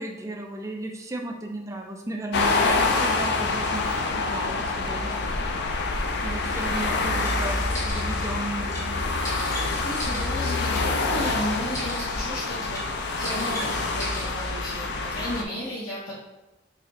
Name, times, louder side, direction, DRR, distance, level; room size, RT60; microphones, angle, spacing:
voice 1, 0.0-5.4 6.2-8.9, right 2 dB, 15° right, 1 dB, 0.4 m, -35 dB
sound 1, 2.3-15.4, left 3 dB, 60° left, 0.4 m, -26 dB
sound 2, 6.8-6.9 7.2-7.4 7.7-8.3 8.7-8.9 9.2-10.9 11.2-11.4 11.7-12.3 12.7-12.9 13.2-14.5, equal, 15° left, 1.0 m, -37 dB
voice 2, 9.8-12.8 13.1-16.1, equal, 80° left, -8 dB, 1.0 m, -34 dB
4.1 x 2.9 x 2.8 m, 1.0 s
head